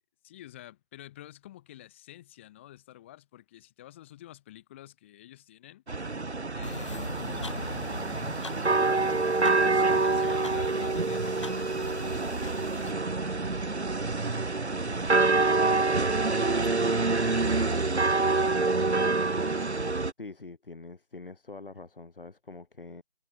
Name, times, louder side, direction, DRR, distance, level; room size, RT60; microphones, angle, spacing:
voice 1, 0.2-5.8 6.5-8.1 9.0-14.2 17.2-18.5, left 14 dB, 10° left, 5.4 m, -50 dB
sound 1, 5.9-20.1, right 3 dB, 80° right, 1.7 m, -26 dB
sound 2, 6.6-12.9, left 4 dB, 25° left, 2.3 m, -43 dB
voice 2, 20.2-23.0, left 3 dB, 55° left, 1.9 m, -44 dB
figure-of-eight pair, 170°, 33 cm